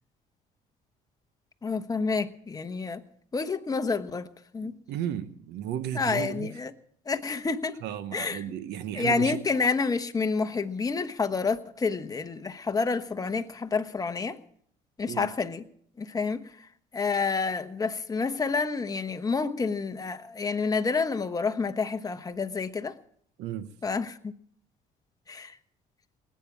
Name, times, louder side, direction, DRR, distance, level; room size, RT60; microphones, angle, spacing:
voice 1, 1.6-3.0 3.3-4.3 4.5-4.7 5.9-6.7 7.1-7.8 8.1-8.4 8.9-14.4 15.0-15.6 16.0-16.7 16.9-23.0 23.8-24.3 25.3-25.6, left 4 dB, 20° left, 1.1 m, -29 dB
voice 2, 4.6-6.5 7.8-9.4 15.1-15.3 23.4-23.7, right 10 dB, 85° right, 1.1 m, -34 dB
19.0 x 9.3 x 7.4 m
cardioid pair, 110°, 17 cm